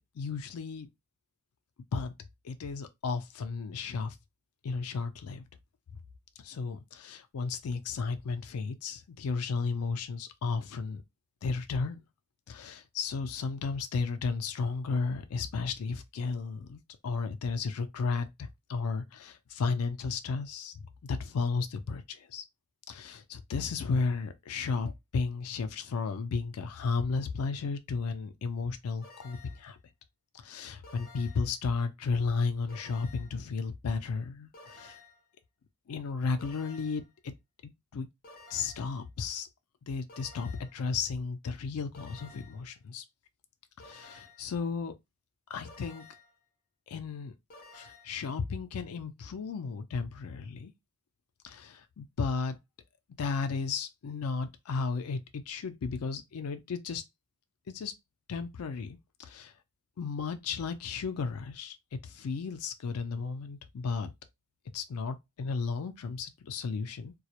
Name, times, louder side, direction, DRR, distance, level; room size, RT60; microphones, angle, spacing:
voice 1, 0.2-0.9 1.9-2.1 2.4-4.2 4.6-5.4 6.4-11.0 11.4-12.0 12.5-22.4 22.9-29.8 30.4-35.0 35.9-37.3 37.9-38.1 38.5-39.5 39.9-43.0 43.8-44.9 45.5-46.0 46.9-47.3 47.7-50.7 51.4-52.6 53.2-57.0 57.7-57.9 58.3-59.5 60.0-64.1 64.7-67.1, left 4 dB, 85° left, 0.4 m, -34 dB
sound 1, 29.0-29.7 30.8-31.6 32.7-33.4 34.5-35.3 36.4-37.1 38.2-39.0 40.1-40.8 41.9-42.7 43.8-44.5 45.6-46.4 47.5-48.2, left 3 dB, 40° left, 0.6 m, -53 dB
2.3 x 2.0 x 2.8 m
head